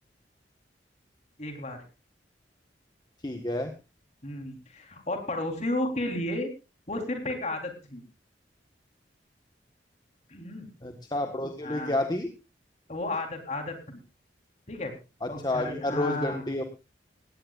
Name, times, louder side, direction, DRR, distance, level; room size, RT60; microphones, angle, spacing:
voice 1, 1.4-1.8 4.2-6.5 6.9-8.0 10.3-10.7 11.6-12.0 12.9-14.0 14.7-14.9 15.3-16.5, left 1 dB, 40° left, 4 dB, 4.0 m, -33 dB
voice 2, 3.2-3.7 10.8-12.3 15.2-16.6, left 1 dB, 25° left, 5 dB, 1.5 m, -30 dB
19.0 x 17.0 x 2.5 m, 0.30 s
head